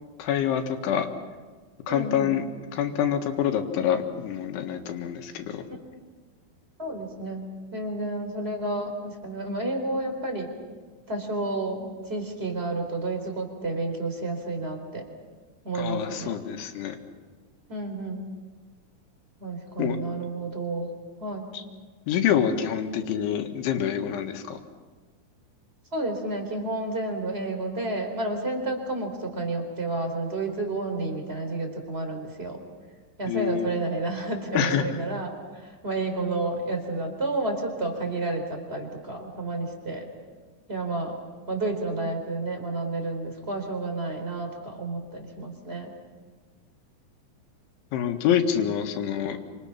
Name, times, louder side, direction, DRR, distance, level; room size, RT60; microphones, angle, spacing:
voice 1, 0.2-1.1 1.9-2.5 2.7-5.6 15.8-17.0 19.8-20.0 22.1-24.6 33.3-33.7 34.5-34.8 47.9-49.4, left 9 dB, 90° left, 4 dB, 4.2 m, -26 dB
voice 2, 1.9-2.4 6.8-10.5 11.1-15.1 15.6-16.4 17.7-18.3 19.4-20.9 21.2-21.5 25.9-32.6 33.2-40.1 40.7-41.2 41.5-45.9, right 2 dB, 15° right, 4 dB, 3.6 m, -31 dB
28.5 x 26.5 x 5.9 m, 1.4 s
omnidirectional pair, 5.3 m